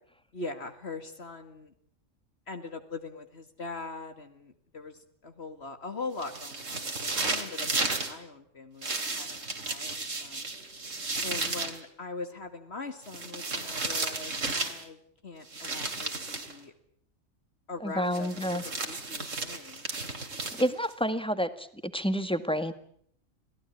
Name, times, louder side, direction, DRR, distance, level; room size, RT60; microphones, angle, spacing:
voice 1, 0.3-1.7 2.5-10.5 11.2-16.7 17.7-19.9, left 3 dB, 55° left, 7 dB, 2.2 m, -41 dB
sound 1, 6.2-8.1 8.8-11.8 13.1-14.8 15.5-16.5 18.1-20.9, right 3 dB, 90° right, 3.2 m, -33 dB
voice 2, 17.8-18.6 20.5-22.7, equal, 5° left, 11 dB, 1.7 m, -29 dB
27.0 x 18.0 x 8.5 m, 0.64 s
omnidirectional pair, 1.3 m